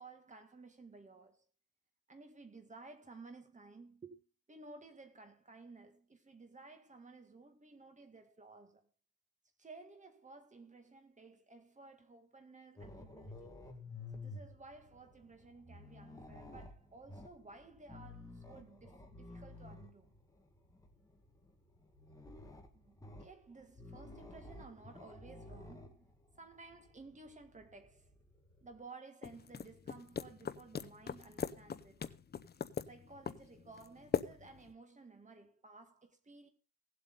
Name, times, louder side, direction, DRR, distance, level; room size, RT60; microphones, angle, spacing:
voice 1, 0.0-1.5 2.1-8.9 9.6-13.6 14.1-20.2 22.7-28.1 28.6-32.1 32.9-36.5, right 3 dB, 20° right, 2.2 m, -56 dB
sound 1, 12.8-28.8, left 2 dB, 10° left, 2.0 m, -53 dB
sound 2, 29.2-34.7, left 6 dB, 25° left, 0.6 m, -41 dB
17.5 x 8.0 x 3.9 m
cardioid pair, 160°, 38 cm